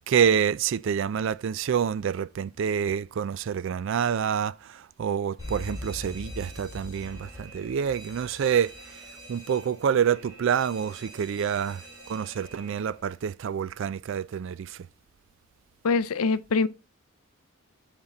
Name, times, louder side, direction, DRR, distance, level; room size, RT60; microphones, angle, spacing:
voice 1, 0.0-9.0 9.3-11.8 12.1-14.9, right 8 dB, 60° right, 0.3 m, -27 dB
Alarm, 5.4-13.1, left 1 dB, 20° right, 3.0 m, -43 dB
voice 2, 15.8-16.7, left 4 dB, 85° left, 0.5 m, -24 dB
5.7 x 5.2 x 4.0 m
head